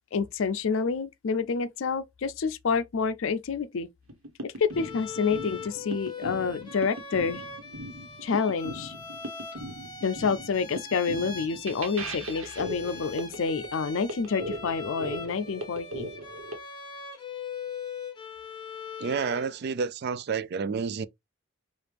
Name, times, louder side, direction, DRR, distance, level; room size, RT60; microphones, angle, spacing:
voice 1, 0.1-3.9 4.4-7.4 8.2-8.9 10.0-16.1, left 5 dB, 65° left, 0.4 m, -28 dB
sound 1, 4.1-16.5, right 1 dB, 80° right, 1.2 m, -39 dB
Bowed string instrument, 4.7-19.6, left 5 dB, 20° left, 1.1 m, -41 dB
voice 2, 19.0-21.1, right 5 dB, 50° right, 0.3 m, -30 dB
4.9 x 2.5 x 3.3 m
head